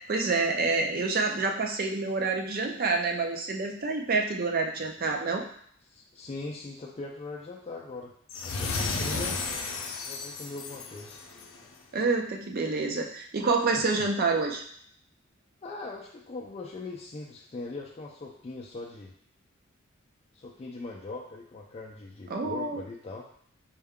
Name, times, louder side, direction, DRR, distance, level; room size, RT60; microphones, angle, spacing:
voice 1, 0.1-5.4 9.1-9.3 11.9-14.6 22.3-22.8, right 3 dB, 45° right, 2 dB, 0.5 m, -28 dB
voice 2, 5.9-8.1 8.4-9.4 10.1-11.2 13.7-14.1 15.6-19.1 20.3-23.3, left 3 dB, 30° left, -2 dB, 0.3 m, -40 dB
sound 1, 8.3-11.6, left 4 dB, 85° left, 0.5 m, -33 dB
4.4 x 2.2 x 3.6 m, 0.63 s
head